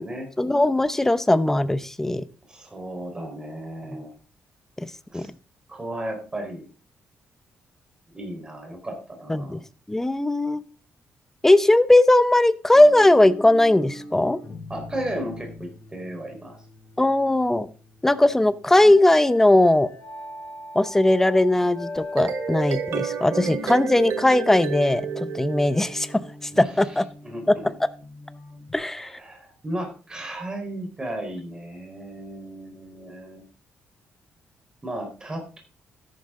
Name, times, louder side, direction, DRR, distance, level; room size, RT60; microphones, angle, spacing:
voice 1, 0.4-2.2 4.8-5.3 9.3-9.6 9.9-10.6 11.4-14.4 17.0-17.7 18.0-19.9 20.7-26.2 26.6-27.0 28.7-29.1, left 1 dB, 10° left, 13 dB, 0.8 m, -19 dB
voice 2, 2.5-4.1 5.1-5.3 5.7-6.6 8.1-9.6 14.7-16.6 26.5-27.4 28.8-33.4 34.8-35.6, right 1 dB, 20° right, 3 dB, 4.4 m, -35 dB
sound 1, 12.7-28.8, left 2 dB, 35° left, 4.9 m, -41 dB
sound 2, 22.0-26.3, right 7 dB, 75° right, 1.3 m, -31 dB
13.5 x 11.0 x 3.8 m, 0.36 s
cardioid pair, 140°, 4 cm